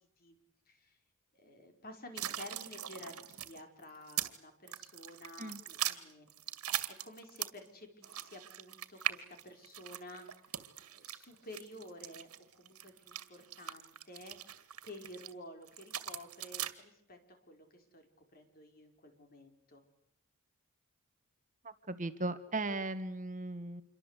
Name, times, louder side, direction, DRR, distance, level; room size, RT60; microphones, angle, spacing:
voice 1, 0.7-1.0 1.3-6.3 6.6-10.6 10.9-19.8, left 1 dB, 45° left, 5 dB, 4.9 m, -52 dB
sound 1, 2.2-4.4 4.7-7.7 8.0-15.3 15.7-16.7, right 12 dB, 90° right, 2.1 m, -40 dB
voice 2, 21.6-23.8, right 2 dB, 35° right, 10 dB, 1.6 m, -37 dB
27.5 x 23.5 x 8.3 m, 0.73 s
head